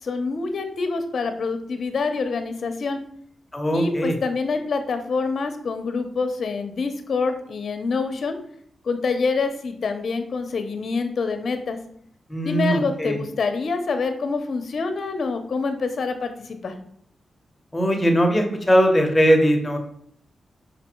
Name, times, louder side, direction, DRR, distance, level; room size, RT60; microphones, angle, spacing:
voice 1, 0.0-3.0 3.7-8.4 8.8-11.8 12.4-16.7, left 4 dB, 60° left, 7 dB, 0.9 m, -26 dB
voice 2, 3.5-4.2 12.3-13.2 17.7-19.8, equal, 15° left, 3 dB, 1.2 m, -20 dB
5.2 x 5.1 x 4.6 m, 0.66 s
wide cardioid pair, 105°, 0 cm